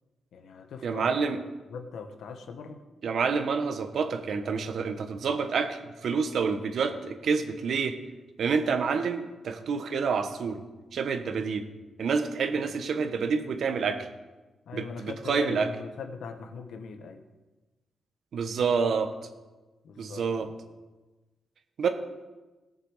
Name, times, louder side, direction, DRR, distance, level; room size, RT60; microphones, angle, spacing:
voice 1, 0.3-1.4 1.7-2.8 11.6-11.7 12.5-12.7 14.7-17.2 19.8-20.5, left 5 dB, 80° left, 6 dB, 1.2 m, -41 dB
voice 2, 0.8-1.4 3.0-8.0 8.4-10.6 10.9-11.6 12.0-14.1 14.7-15.7 18.3-19.1 20.0-20.5 21.8-21.9, right 5 dB, 65° right, 8 dB, 1.1 m, -28 dB
18.0 x 6.7 x 4.9 m, 1.2 s
cardioid pair, 105°, 0 cm